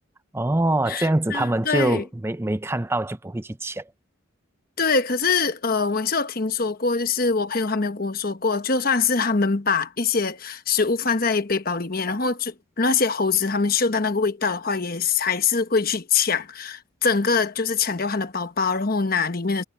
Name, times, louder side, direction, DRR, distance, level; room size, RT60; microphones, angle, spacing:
voice 1, 0.3-3.9, right 1 dB, 10° right, 0.4 m, -24 dB
voice 2, 0.9-2.0 4.8-19.6, left 4 dB, 45° left, 1.1 m, -23 dB
head